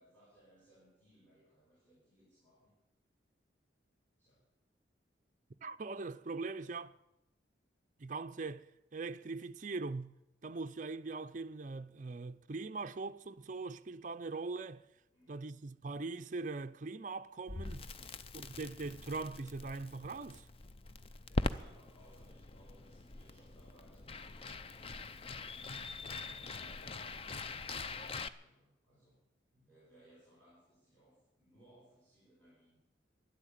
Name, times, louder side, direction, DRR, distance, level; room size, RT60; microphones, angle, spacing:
voice 1, 0.0-2.8 4.2-4.4 15.1-15.5 17.9-18.6 21.3-24.8 25.4-29.2 29.5-32.8, right 1 dB, 10° left, 5.2 m, -66 dB
voice 2, 5.6-6.9 8.0-10.2 10.4-14.9 15.3-17.9 18.3-20.5, right 3 dB, 40° right, 0.5 m, -41 dB
Crackle, 17.5-28.3, left 3 dB, 30° left, 0.5 m, -42 dB
13.0 x 11.0 x 9.0 m
head